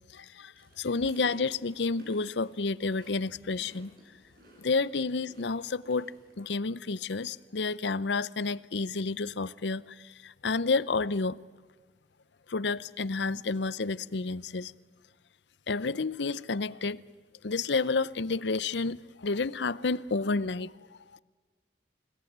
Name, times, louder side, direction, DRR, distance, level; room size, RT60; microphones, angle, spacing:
voice 1, 0.1-3.9 4.6-11.4 12.5-14.7 15.7-17.0 17.4-20.8 21.1-21.2, left 4 dB, 75° left, 0.7 m, -30 dB
sound 1, 0.6-6.3, equal, 50° right, 7.5 m, -55 dB
29.5 x 17.5 x 9.4 m
head